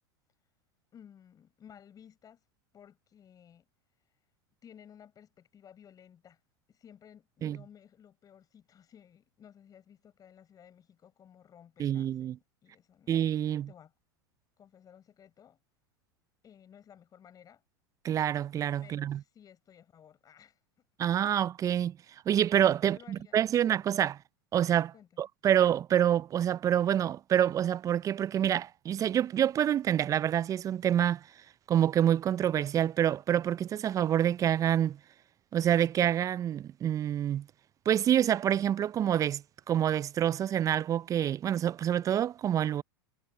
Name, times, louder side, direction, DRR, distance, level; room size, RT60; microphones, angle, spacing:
voice 1, 0.9-2.4 2.7-3.7 4.6-6.4 6.7-13.1 13.7-13.9 14.6-15.6 16.4-17.6 18.8-20.9 22.8-23.6 24.9-25.2, left 9 dB, 30° left, 5.5 m, -56 dB
voice 2, 11.8-12.4 13.1-13.7 18.0-19.2 21.0-22.0 22.3-24.2 24.5-31.3 31.7-35.0 35.5-37.5 37.9-42.8, right 10 dB, 25° right, 0.4 m, -27 dB
hypercardioid pair, 100°, 12 cm